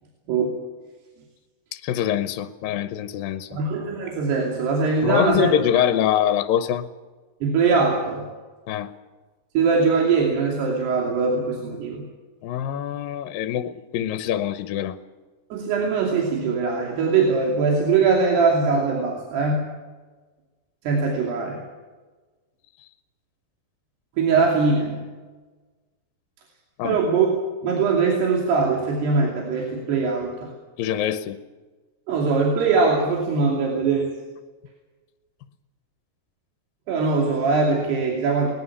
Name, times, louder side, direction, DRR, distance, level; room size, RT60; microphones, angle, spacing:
voice 1, 0.3-0.6 3.5-5.5 5.7-5.8 7.4-8.2 9.5-12.1 15.5-19.6 20.8-21.6 24.2-25.0 26.8-27.3 27.6-30.5 32.1-34.1 36.9-38.5, right 4 dB, 80° right, -1 dB, 4.8 m, -21 dB
voice 2, 1.7-3.6 5.0-6.9 8.7-8.9 12.4-15.0 26.8-27.0 30.8-31.4, left 10 dB, 75° left, 11 dB, 2.3 m, -24 dB
21.0 x 19.5 x 7.3 m, 1.3 s
omnidirectional pair, 4.7 m